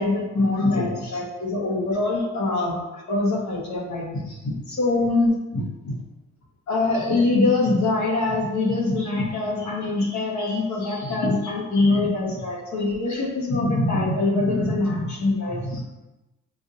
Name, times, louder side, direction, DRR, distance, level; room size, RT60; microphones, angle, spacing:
voice 1, 0.0-5.7 6.7-15.8, left 2 dB, 65° left, -3 dB, 1.4 m, -23 dB
6.9 x 2.6 x 2.7 m, 1.0 s
cardioid pair, 90°, 30 cm